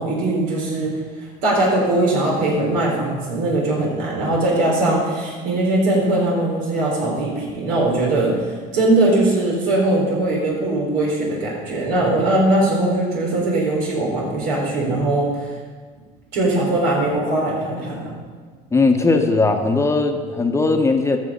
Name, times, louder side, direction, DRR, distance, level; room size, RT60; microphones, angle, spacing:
voice 1, 0.0-15.6 16.3-18.1, right 2 dB, 85° right, -2 dB, 3.9 m, -20 dB
voice 2, 18.7-21.2, left 3 dB, 15° left, 5 dB, 1.0 m, -18 dB
13.5 x 6.2 x 5.5 m, 1.5 s
cardioid pair, 105°, 16 cm